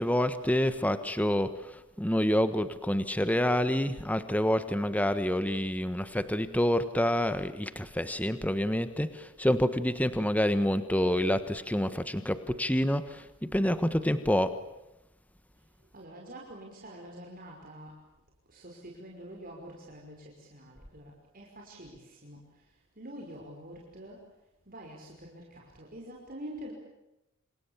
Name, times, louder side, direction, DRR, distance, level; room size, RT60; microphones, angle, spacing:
voice 1, 0.0-14.6, equal, 5° left, 11 dB, 1.4 m, -28 dB
voice 2, 15.9-17.9 18.5-22.4 23.0-24.2 24.7-26.7, right 1 dB, 45° right, -1 dB, 5.6 m, -46 dB
28.5 x 28.0 x 7.2 m, 0.92 s
head